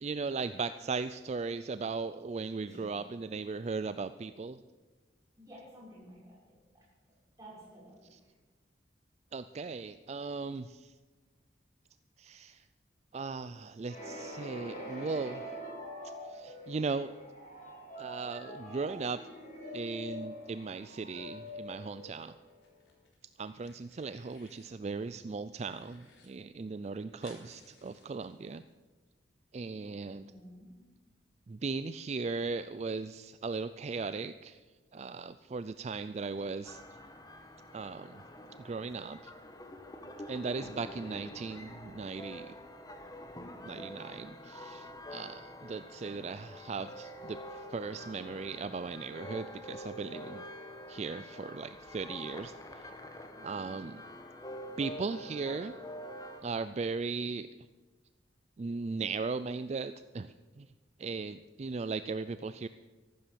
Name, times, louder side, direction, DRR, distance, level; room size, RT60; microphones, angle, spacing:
voice 1, 0.0-4.6 8.1-8.2 9.3-10.9 12.2-12.6 13.1-15.4 16.3-17.1 18.0-19.2 19.7-22.3 23.4-28.6 29.5-30.2 31.5-34.6 34.9-36.8 37.7-38.2 38.6-39.3 40.3-42.6 43.6-50.4 50.9-52.9 53.4-54.0 54.8-55.8 56.4-57.5 58.6-60.7 61.0-62.7, right 4 dB, 35° right, 13 dB, 0.3 m, -37 dB
voice 2, 5.4-6.8 7.4-8.0 30.2-30.8, equal, 15° right, -6 dB, 6.4 m, -53 dB
sound 1, 13.9-22.6, equal, 45° left, 5.2 m, -44 dB
sound 2, 22.5-23.2 23.4-24.7 25.1-26.3 26.5-26.6 26.8-28.7, left 2 dB, 85° left, 4.1 m, -60 dB
sound 3, 36.6-56.4, equal, 20° left, 1.2 m, -46 dB
14.0 x 12.0 x 6.9 m, 1.3 s
head